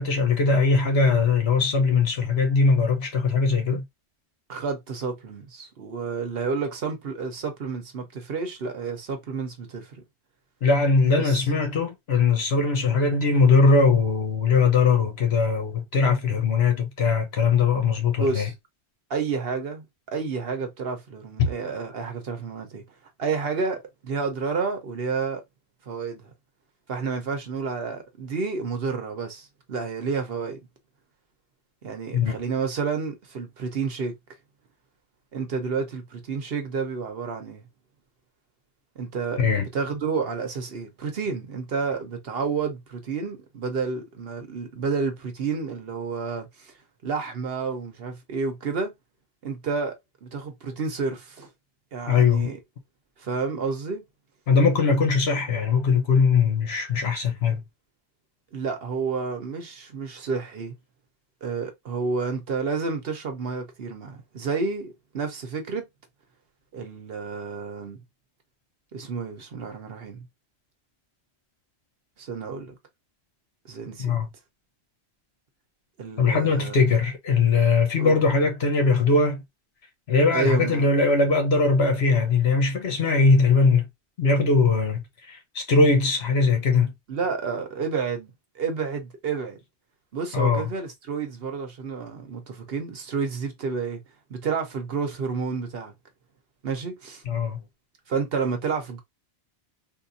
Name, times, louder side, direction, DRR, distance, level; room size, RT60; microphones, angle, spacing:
voice 1, 0.0-3.8 10.6-18.5 32.1-32.4 39.4-39.7 52.1-52.5 54.5-57.6 74.0-74.3 76.2-79.4 80.1-83.9 84.2-86.9 90.3-90.7 97.3-97.6, left 4 dB, 65° left, 1.2 m, -21 dB
voice 2, 4.5-10.0 11.2-11.4 18.2-18.5 19.1-22.8 23.2-25.4 25.9-26.3 26.9-30.6 31.8-34.1 35.3-37.7 39.0-46.7 47.0-48.9 49.4-50.0 50.2-51.5 51.9-52.6 53.2-54.0 58.5-60.7 61.4-65.9 66.7-68.0 68.9-70.2 72.2-72.8 73.6-74.2 76.0-76.9 78.0-78.2 80.3-80.9 87.1-89.6 90.1-94.0 94.3-95.9 96.6-97.2 98.1-99.0, right 5 dB, 60° right, 1.0 m, -30 dB
3.7 x 2.3 x 2.6 m
omnidirectional pair, 1.2 m